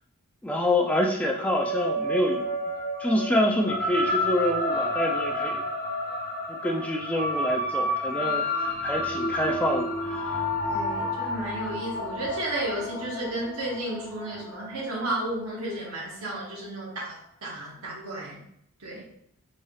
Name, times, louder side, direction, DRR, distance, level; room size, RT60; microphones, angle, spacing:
voice 1, 0.4-2.5 3.0-5.6 6.5-10.3, left 1 dB, 5° left, 0 dB, 0.3 m, -27 dB
sound 1, 1.3-16.0, left 1 dB, 45° left, 0.7 m, -30 dB
voice 2, 10.7-18.4 18.8-19.1, right 1 dB, 80° right, -3 dB, 0.9 m, -33 dB
4.1 x 3.2 x 2.3 m, 0.72 s
head